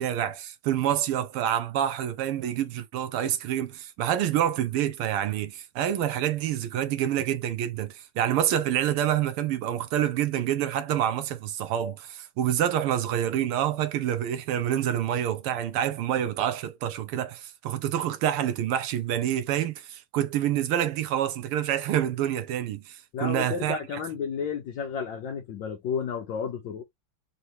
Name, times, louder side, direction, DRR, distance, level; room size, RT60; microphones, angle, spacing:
voice 1, 0.0-23.8, right 11 dB, 90° right, 1.7 m, -27 dB
voice 2, 23.1-26.8, left 6 dB, 65° left, 1.4 m, -32 dB
4.4 x 3.0 x 3.0 m
omnidirectional pair, 2.4 m